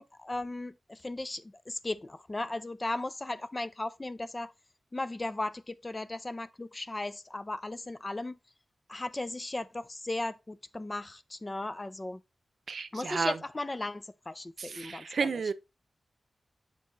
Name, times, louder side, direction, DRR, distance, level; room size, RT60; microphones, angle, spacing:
voice 1, 0.0-4.5 4.9-8.4 8.9-12.2 12.9-15.4, left 2 dB, 25° left, 0.5 m, -36 dB
voice 2, 12.7-13.3 14.6-15.5, right 5 dB, 70° right, 0.6 m, -32 dB
6.1 x 4.6 x 3.9 m
wide cardioid pair, 95°, 0 cm